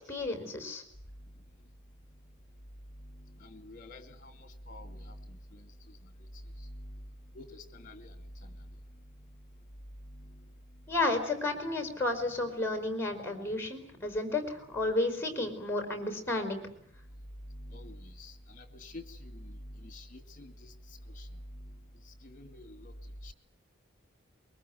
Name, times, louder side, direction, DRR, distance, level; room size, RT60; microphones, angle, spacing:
voice 1, 0.1-0.8 10.9-14.4 14.7-16.7, left 2 dB, 10° left, 5 dB, 4.9 m, -32 dB
voice 2, 3.4-4.3 4.7-5.2 5.5-5.6 7.3-8.1 17.7-19.5 19.8-20.5 21.2-21.3 22.2-22.9 23.2-23.3, left 1 dB, 40° left, 8 dB, 2.4 m, -47 dB
23.5 x 23.0 x 9.4 m, 0.69 s
head